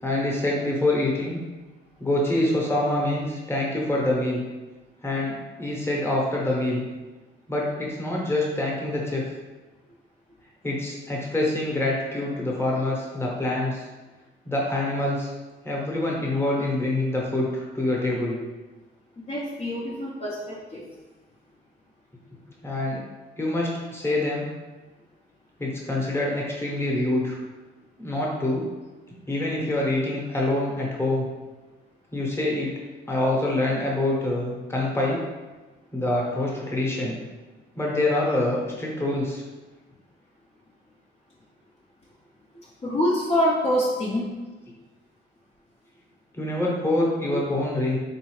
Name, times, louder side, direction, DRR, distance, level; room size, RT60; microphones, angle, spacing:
voice 1, 0.0-1.4 2.0-4.4 5.0-6.8 7.5-9.2 10.6-13.8 14.4-15.3 15.6-18.4 22.6-23.0 23.4-24.5 25.6-27.4 28.0-28.7 29.3-31.2 32.1-32.7 33.1-35.2 35.9-37.2 37.7-39.4 46.3-48.0, left 1 dB, 10° left, -3 dB, 1.0 m, -25 dB
voice 2, 19.2-20.9 42.8-44.3 47.3-47.4, equal, 35° left, -6 dB, 0.7 m, -25 dB
3.6 x 2.7 x 3.2 m, 1.2 s
cardioid pair, 90°, 20 cm